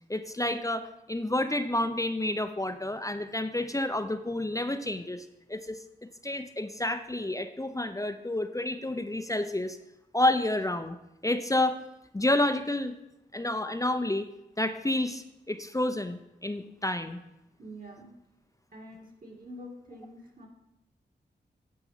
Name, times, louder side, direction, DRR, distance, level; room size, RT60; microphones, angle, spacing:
voice 1, 0.1-9.8 10.1-11.0 11.2-11.8 12.1-13.0 13.3-14.3 14.6-17.2, left 1 dB, 15° left, 8 dB, 0.6 m, -30 dB
voice 2, 17.6-18.1 18.7-20.5, equal, 50° right, 0 dB, 2.1 m, -46 dB
9.1 x 4.7 x 5.7 m, 0.89 s
cardioid pair, 50°, 19 cm